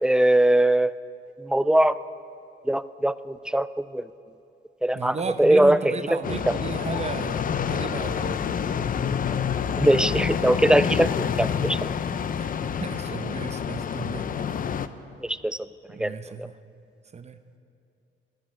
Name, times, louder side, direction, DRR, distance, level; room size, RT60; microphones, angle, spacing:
voice 1, 0.0-0.9 1.4-2.0 2.7-4.0 4.8-6.2 6.5-6.6 9.8-11.8 15.2-15.6 16.0-16.1 16.4-16.5, right 1 dB, 5° right, 15 dB, 0.3 m, -21 dB
voice 2, 4.9-8.7 12.4-14.3 15.9-16.6 17.1-17.4, right 5 dB, 35° right, 10 dB, 0.7 m, -34 dB
sound 1, 6.2-14.9, left 7 dB, 45° left, 0.6 m, -28 dB
10.5 x 10.5 x 8.8 m, 2.6 s
cardioid pair, 90°, 20 cm